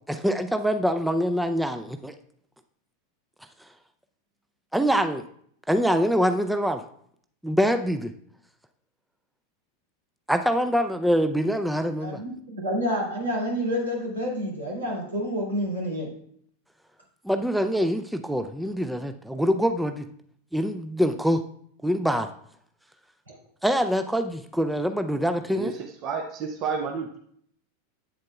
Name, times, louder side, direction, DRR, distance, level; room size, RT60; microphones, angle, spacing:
voice 1, 0.1-2.1 4.7-5.2 5.7-6.8 7.4-8.1 10.3-12.2 17.2-20.0 20.5-21.4 21.8-22.3 23.6-25.7, equal, ahead, 8 dB, 0.4 m, -24 dB
voice 2, 12.0-16.1 23.3-23.4, equal, 85° right, -3 dB, 2.3 m, -29 dB
voice 3, 25.5-27.2, right 5 dB, 45° right, 4 dB, 0.7 m, -31 dB
8.2 x 7.5 x 2.3 m, 0.65 s
hypercardioid pair, 90°, 0 cm